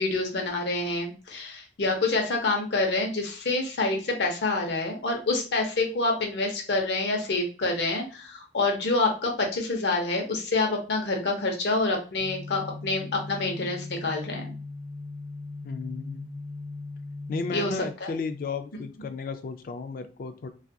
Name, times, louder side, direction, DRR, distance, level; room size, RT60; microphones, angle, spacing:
voice 1, 0.0-14.5 17.5-17.7 18.0-18.1, left 3 dB, 75° left, 2 dB, 0.7 m, -27 dB
sound 1, 12.2-17.7, left 3 dB, 30° left, 0.8 m, -39 dB
voice 2, 15.6-16.4 17.3-20.5, left 4 dB, 50° left, 9 dB, 0.3 m, -34 dB
2.6 x 2.3 x 2.2 m, 0.36 s
head